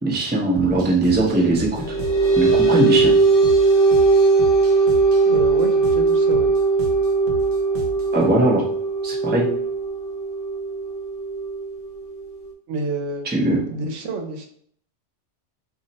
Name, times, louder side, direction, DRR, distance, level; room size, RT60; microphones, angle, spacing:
voice 1, 0.0-1.8 2.4-3.2 8.1-8.6 9.0-9.5 13.3-13.7, right 2 dB, 15° right, -3 dB, 0.4 m, -20 dB
sound 1, 0.6-8.2, equal, 60° right, 0.7 m, -35 dB
sound 2, 1.6-12.5, right 4 dB, 60° left, 0.9 m, -19 dB
voice 2, 5.3-6.5 12.7-13.3 13.7-14.5, right 3 dB, 85° right, 4 dB, 0.9 m, -29 dB
2.5 x 2.1 x 3.9 m, 0.62 s
omnidirectional pair, 1.2 m